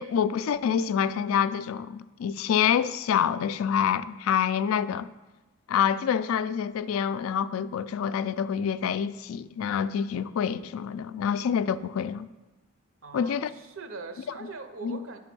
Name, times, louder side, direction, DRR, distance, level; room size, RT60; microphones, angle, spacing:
voice 1, 0.0-5.1 5.7-12.3 13.1-13.5 14.8-15.0, left 8 dB, 80° left, 0.3 m, -27 dB
voice 2, 13.0-15.2, right 3 dB, 70° right, 0.7 m, -41 dB
9.7 x 3.5 x 6.0 m
head